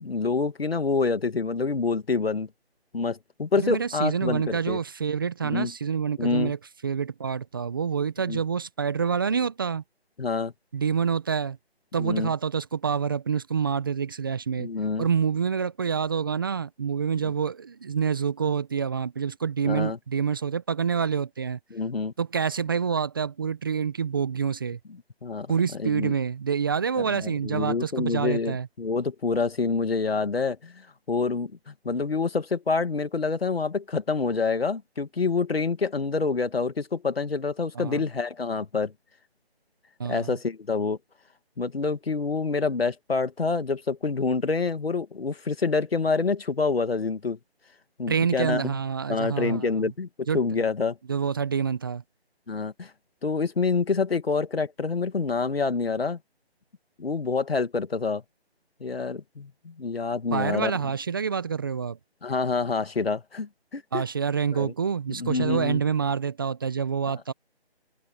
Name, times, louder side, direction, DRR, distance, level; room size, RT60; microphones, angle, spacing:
voice 1, 0.0-2.5 2.9-4.8 5.4-5.7 6.2-6.5 8.3-8.4 10.2-10.5 12.0-12.3 14.6-15.1 17.2-17.3 19.6-20.0 21.7-22.1 25.2-26.1 27.0-30.8 31.1-38.9 40.1-41.0 41.6-47.4 48.0-48.8 49.1-50.1 50.3-51.0 52.5-52.9 53.2-56.2 57.0-58.2 58.8-60.7 62.2-64.0 64.5-64.7 65.2-65.8, left 4 dB, 65° left, 2.4 m, -27 dB
voice 2, 3.6-6.6 6.8-9.8 10.7-11.6 11.9-14.7 15.0-21.6 22.2-24.8 25.5-28.7 37.7-38.0 40.0-40.3 48.1-49.9 50.3-50.4 51.1-52.0 60.3-62.0 63.9-67.3, right 6 dB, 20° right, 0.9 m, -27 dB
figure-of-eight pair, 160°, 32 cm